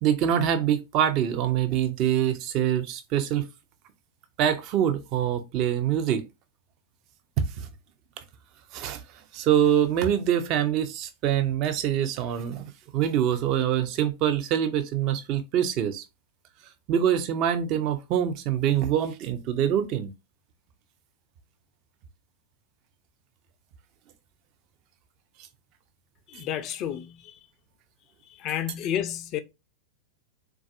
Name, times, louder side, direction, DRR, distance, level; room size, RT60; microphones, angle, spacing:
voice 1, 0.0-3.5 4.4-6.2 7.6-7.7 8.7-9.0 9.3-12.6 12.9-16.0 16.9-20.1, right 9 dB, 40° right, 0.5 m, -25 dB
voice 2, 26.3-27.4 28.4-29.4, left 10 dB, 35° left, 0.4 m, -31 dB
3.9 x 2.4 x 2.4 m
figure-of-eight pair, 90°, 0 cm